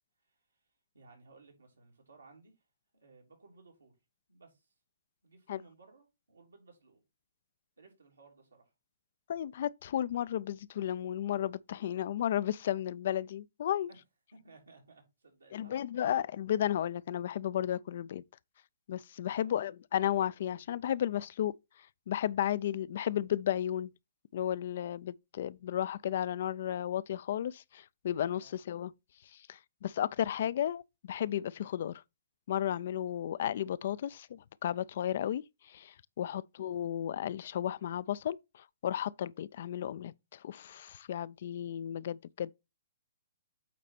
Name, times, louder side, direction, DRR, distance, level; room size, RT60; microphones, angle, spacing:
voice 1, 0.9-2.6 2.9-3.9 4.3-4.7 5.2-7.0 7.8-8.7 13.9-14.0 14.3-15.7 19.3-19.5 28.4-28.5 36.2-36.4, right 3 dB, 85° right, 3.2 m, -59 dB
voice 2, 9.3-13.9 15.5-18.2 18.9-21.5 22.1-23.9 24.3-28.9 29.3-32.0 32.5-42.5, left 10 dB, 55° left, 0.4 m, -34 dB
8.4 x 4.1 x 4.2 m
figure-of-eight pair, 125°, 0 cm